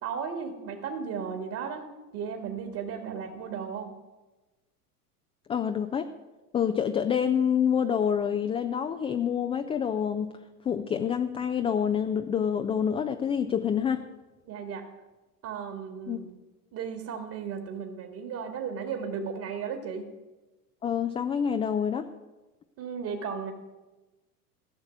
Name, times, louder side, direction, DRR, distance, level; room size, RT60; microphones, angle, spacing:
voice 1, 0.0-1.9 2.1-3.9 14.5-14.9 15.4-16.3 16.7-20.0 22.8-23.5, right 6 dB, 45° right, 4 dB, 2.0 m, -35 dB
voice 2, 5.5-6.1 6.5-10.3 10.6-14.0 16.1-16.2 20.8-22.1, left 8 dB, 15° left, 7 dB, 0.4 m, -27 dB
15.0 x 6.6 x 9.1 m, 1.1 s
hypercardioid pair, 90°, 47 cm